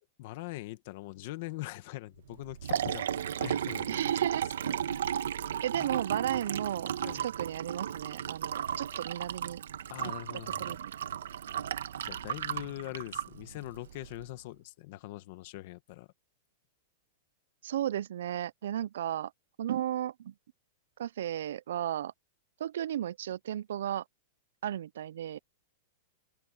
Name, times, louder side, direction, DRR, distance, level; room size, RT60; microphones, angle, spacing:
voice 1, 0.2-4.0 4.9-5.5 5.8-5.9 6.3-6.4 7.0-7.3 9.9-10.8 12.0-16.1, left 18 dB, 40° left, 1.3 m, -42 dB
Liquid, 2.3-14.2, right 9 dB, 90° right, 1.2 m, -35 dB
voice 2, 3.9-4.4 5.6-6.9 7.2-9.6 10.6-11.0 17.6-19.3 19.6-20.3 21.0-22.1 22.6-24.0 24.6-25.4, right 11 dB, 65° right, 0.4 m, -34 dB
open air
supercardioid pair, 175°, 0 cm